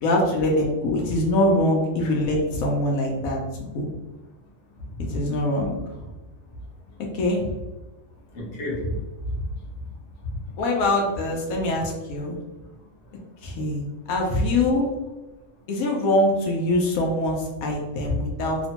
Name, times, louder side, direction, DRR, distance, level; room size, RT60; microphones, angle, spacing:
voice 1, 0.0-3.9 5.1-5.7 7.1-7.5 10.6-12.4 13.4-14.9 15.7-18.6, left 1 dB, 85° left, 0 dB, 1.0 m, -23 dB
voice 2, 8.3-9.4 10.3-10.5 12.5-12.6 13.1-13.2 13.7-13.8 18.1-18.2, left 1 dB, 60° left, -3 dB, 1.0 m, -31 dB
2.9 x 2.1 x 2.8 m, 1.1 s
omnidirectional pair, 1.4 m